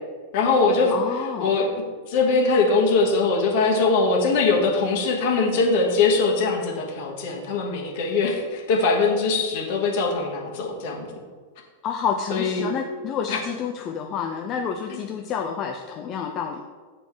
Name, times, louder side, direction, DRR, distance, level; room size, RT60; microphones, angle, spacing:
voice 1, 0.3-1.7 2.1-11.1 12.3-12.6 13.3-13.4 14.9-15.0, left 3 dB, 60° left, 0 dB, 1.3 m, -22 dB
voice 2, 0.9-1.6 11.8-16.6, left 7 dB, 40° left, 4 dB, 0.4 m, -29 dB
7.4 x 4.1 x 3.5 m, 1.5 s
hypercardioid pair, 100°, 0 cm